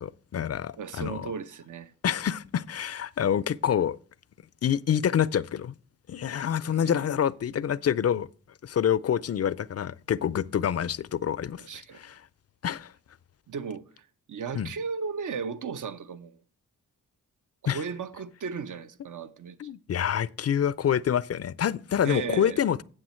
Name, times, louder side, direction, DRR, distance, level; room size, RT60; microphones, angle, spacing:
voice 1, 0.0-1.3 2.0-4.0 4.6-5.7 6.1-8.3 8.6-11.6 11.9-12.2 12.6-12.9 14.6-14.7 17.7-17.8 19.6-22.8, left 9 dB, 45° left, 0.5 m, -27 dB
voice 2, 0.8-1.9 6.7-7.0 11.6-12.0 13.5-16.4 17.6-19.6 22.0-22.6, right 6 dB, 60° right, 0.9 m, -36 dB
8.8 x 7.5 x 4.4 m
cardioid pair, 45°, 35 cm